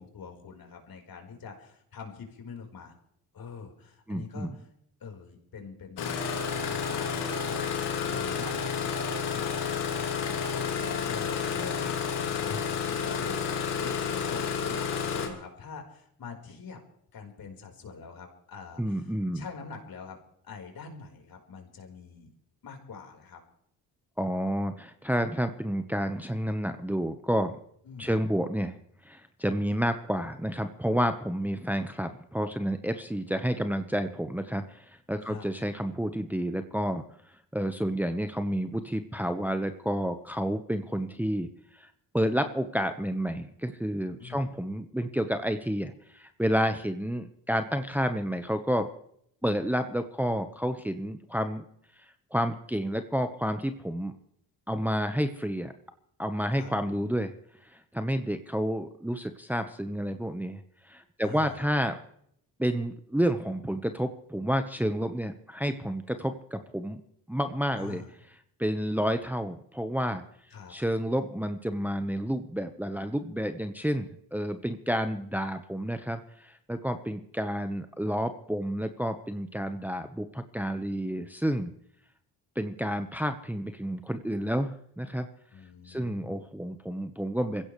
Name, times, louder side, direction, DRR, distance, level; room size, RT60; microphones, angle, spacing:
voice 1, 0.0-2.9 3.3-4.6 5.0-9.0 9.3-12.6 12.9-16.8 17.1-20.2 20.4-22.3 22.6-23.4 27.8-28.1 35.2-35.5 44.2-44.4 56.5-56.7 61.2-61.6 67.8-68.1 70.5-70.7 85.5-86.5, left 5 dB, 55° left, 2 dB, 4.6 m, -44 dB
voice 2, 4.1-4.5 18.8-19.4 24.2-27.6 28.0-28.8 29.0-37.0 37.5-41.5 41.7-41.9 42.1-48.9 49.4-51.6 52.3-54.1 54.7-55.7 56.2-57.3 57.7-60.6 60.9-62.0 62.6-67.0 67.3-68.0 68.6-70.2 70.7-81.7 82.6-85.3 85.9-87.6, equal, 5° right, 7 dB, 1.1 m, -30 dB
Engine starting, 6.0-15.3, left 6 dB, 80° left, 2.9 m, -30 dB
23.5 x 15.5 x 3.3 m, 0.69 s
supercardioid pair, 65°, 41 cm